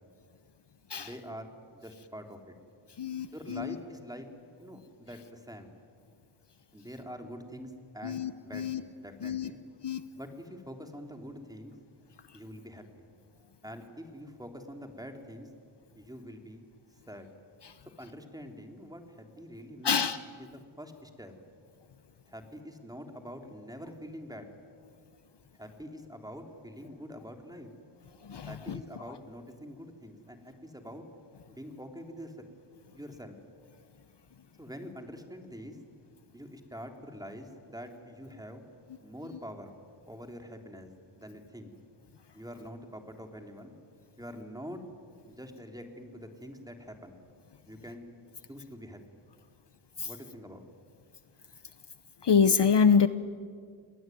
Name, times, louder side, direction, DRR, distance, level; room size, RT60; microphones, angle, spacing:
voice 1, 1.0-2.5 3.3-4.3 4.6-5.7 6.7-9.6 10.2-11.7 12.3-13.1 13.6-15.5 16.0-16.6 17.1-17.3 18.0-20.1 20.4-21.3 22.3-24.5 25.5-27.7 28.4-31.0 31.5-32.4 32.9-33.4 34.6-35.8 36.3-38.6 39.0-39.7 40.1-40.9 41.1-41.7 42.3-43.7 44.2-44.8 45.3-47.2 47.7-48.1 48.5-49.0 50.0-50.7, equal, 5° right, 4 dB, 3.5 m, -45 dB
voice 2, 3.0-3.7 8.0-8.8 9.2-9.5 9.8-10.0 19.8-20.2 28.3-28.8 50.0-50.1 52.2-53.1, left 6 dB, 55° left, 13 dB, 1.0 m, -26 dB
30.0 x 20.5 x 9.4 m, 2.1 s
wide cardioid pair, 75°, 49 cm